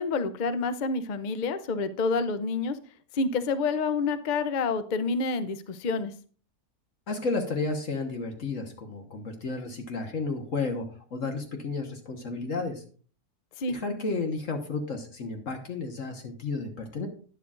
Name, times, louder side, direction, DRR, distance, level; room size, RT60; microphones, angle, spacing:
voice 1, 0.0-2.8 3.1-6.1 13.6-13.8, left 4 dB, 75° left, 12 dB, 0.4 m, -28 dB
voice 2, 7.1-10.8 11.1-12.8 13.7-17.1, left 3 dB, 55° left, 4 dB, 1.5 m, -32 dB
11.5 x 10.0 x 2.5 m, 0.42 s
omnidirectional pair, 1.6 m